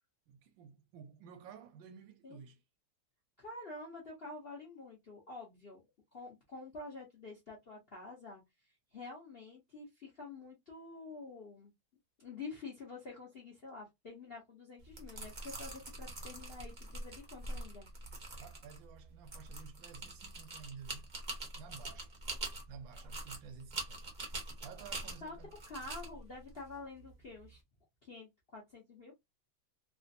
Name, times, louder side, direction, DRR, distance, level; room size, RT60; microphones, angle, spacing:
voice 1, 0.3-2.6 18.4-21.1 21.6-22.2 22.7-25.5, right 7 dB, 75° right, 1.2 m, -53 dB
voice 2, 3.4-5.8 6.1-8.4 8.9-11.7 12.2-17.9 25.2-25.3 25.7-27.6 28.0-29.1, left 3 dB, 50° left, 0.6 m, -48 dB
sound 1, 14.8-27.6, right 2 dB, 55° right, 0.5 m, -45 dB
3.3 x 2.4 x 2.6 m
omnidirectional pair, 2.3 m